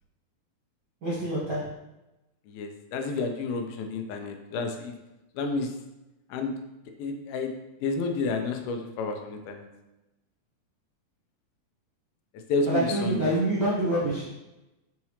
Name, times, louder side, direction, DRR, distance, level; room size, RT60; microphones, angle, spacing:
voice 1, 1.0-1.7 12.7-14.2, right 1 dB, 85° right, -8 dB, 0.9 m, -26 dB
voice 2, 2.5-4.9 5.4-5.7 6.3-6.5 7.0-7.5 7.8-9.7 12.5-13.3, left 3 dB, 80° left, 4 dB, 2.5 m, -30 dB
5.8 x 5.6 x 3.1 m, 0.99 s
omnidirectional pair, 4.2 m